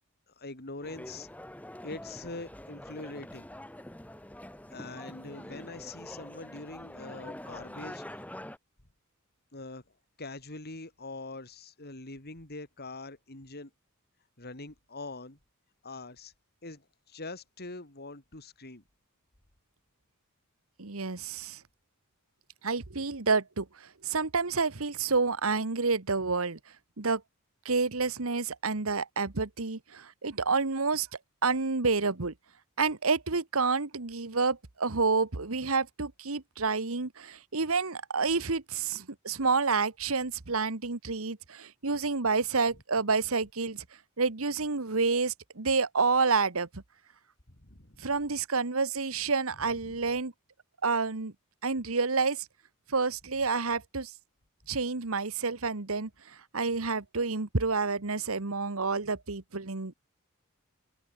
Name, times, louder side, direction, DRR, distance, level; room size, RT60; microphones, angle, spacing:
voice 1, 0.3-1.3 1.8-3.5 4.7-8.3 9.5-9.8 10.2-13.7 14.4-15.4 15.8-16.3 16.6-18.8 47.5-48.1 49.8-50.1, left 2 dB, 45° left, 3.6 m, -43 dB
sound 1, 0.8-8.6, left 1 dB, 5° left, 2.6 m, -45 dB
voice 2, 20.8-21.6 22.6-26.6 27.0-27.2 27.6-31.1 31.4-32.3 32.8-43.8 44.2-46.8 48.0-50.3 50.8-51.3 51.6-52.4 52.9-54.1 54.7-56.1 56.5-59.9, right 4 dB, 70° right, 1.4 m, -29 dB
open air
head